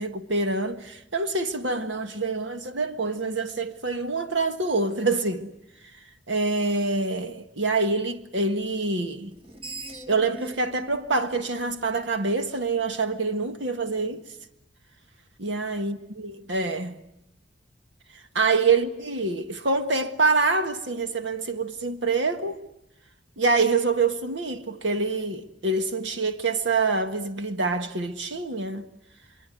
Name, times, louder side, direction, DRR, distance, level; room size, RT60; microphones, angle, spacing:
voice 1, 0.0-5.5 6.3-9.3 10.1-14.2 15.4-17.0 18.3-22.6 23.4-28.8, right 3 dB, 70° right, 1.6 m, -26 dB
Screech, 9.3-12.5, right 1 dB, 30° right, 1.8 m, -41 dB
26.0 x 23.5 x 9.3 m
head